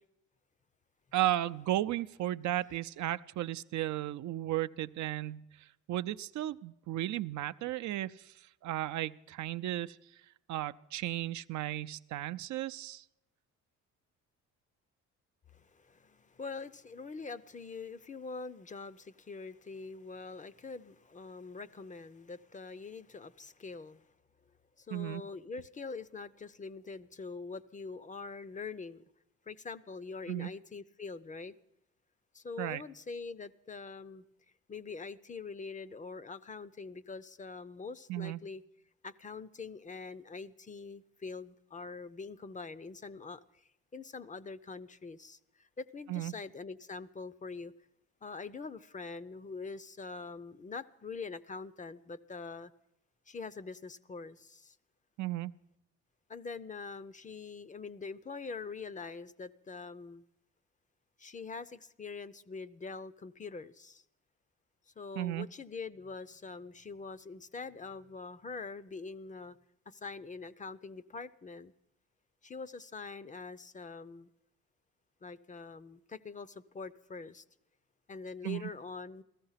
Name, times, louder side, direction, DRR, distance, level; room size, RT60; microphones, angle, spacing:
voice 1, 1.1-5.4 5.9-8.3 8.6-10.0 10.5-13.0 24.9-25.2 30.3-30.5 32.6-32.8 38.1-38.4 46.1-46.3 55.2-55.5 65.2-65.5 78.4-78.6, right 14 dB, 70° right, 12 dB, 0.5 m, -34 dB
voice 2, 15.5-24.1 24.8-29.0 29.5-31.5 32.3-34.2 34.7-38.6 39.0-47.7 48.2-52.7 53.3-54.8 56.3-60.2 61.2-64.0 64.9-69.6 69.9-71.7 72.4-74.3 75.2-77.4 78.1-79.2, left 4 dB, 25° left, 17 dB, 0.5 m, -44 dB
15.5 x 13.5 x 5.7 m, 0.82 s
cardioid pair, 90°, 30 cm